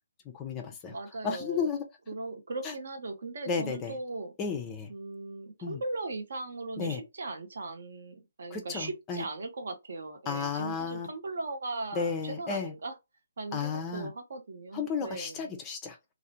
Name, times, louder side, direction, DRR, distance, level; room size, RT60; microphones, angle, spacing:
voice 1, 0.3-0.9 1.2-1.8 2.6-2.7 3.5-4.0 4.4-4.9 5.6-5.8 6.8-7.0 8.5-9.3 10.3-11.1 12.0-12.7 13.5-14.1 14.7-16.1, left 5 dB, 15° left, 0.4 m, -33 dB
voice 2, 0.9-1.7 2.1-4.3 4.9-12.9 13.4-15.5, right 3 dB, 60° right, 0.8 m, -38 dB
2.4 x 2.0 x 2.7 m
hypercardioid pair, 165°, 0 cm